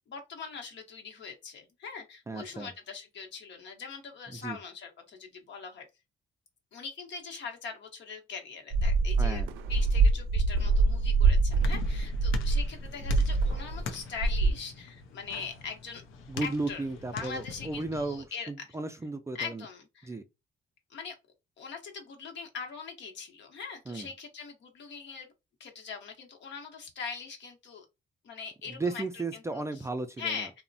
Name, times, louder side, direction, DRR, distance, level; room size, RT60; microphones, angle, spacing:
voice 1, 0.1-5.9 6.7-9.4 9.7-16.0 16.4-16.8 17.1-18.5 19.3-20.1 20.9-21.1 21.6-25.3 25.6-27.8 28.2-29.8 30.2-30.6, left 5 dB, 65° left, 0.9 m, -41 dB
voice 2, 2.3-2.7 4.4-4.6 9.2-9.5 16.3-19.7 20.1-20.2 23.9-24.1 28.8-30.4, right 3 dB, 15° right, 0.3 m, -34 dB
sound 1, 8.7-13.9 14.1-14.5, right 3 dB, 85° right, 0.4 m, -25 dB
sound 2, 11.0-18.3, left 5 dB, 85° left, 0.5 m, -43 dB
3.0 x 2.1 x 2.5 m
cardioid pair, 90°, 20 cm